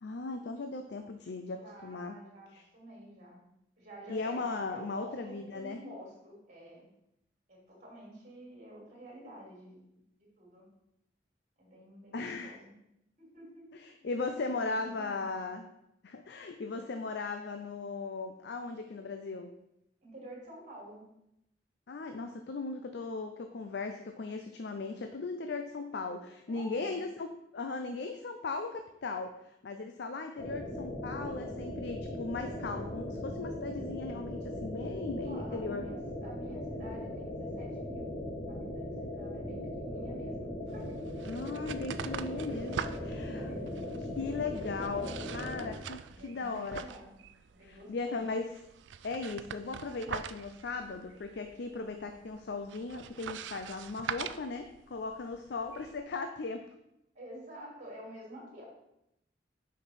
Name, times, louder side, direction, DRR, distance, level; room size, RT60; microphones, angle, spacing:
voice 1, 0.0-2.2 2.5-2.6 4.1-5.8 12.1-12.5 13.7-15.7 16.0-19.5 21.9-27.3 27.5-29.4 29.6-35.9 41.2-42.8 43.0-43.4 44.2-46.8 47.6-48.6 49.0-56.6, left 3 dB, 65° left, 6 dB, 0.5 m, -37 dB
voice 2, 1.4-3.4 3.8-6.9 7.5-10.7 11.6-12.7 13.2-13.7 13.9-14.1 14.3-15.2 20.0-21.1 26.5-27.0 35.3-38.2 38.5-40.9 42.7-43.9 46.1-47.2 47.5-48.2 57.1-58.6, right 1 dB, 45° right, -3 dB, 2.8 m, -50 dB
sound 1, 30.4-45.7, left 1 dB, 25° left, 1.2 m, -39 dB
sound 2, 40.7-56.0, right 7 dB, 80° right, 0.4 m, -44 dB
6.8 x 5.3 x 4.2 m, 0.83 s
head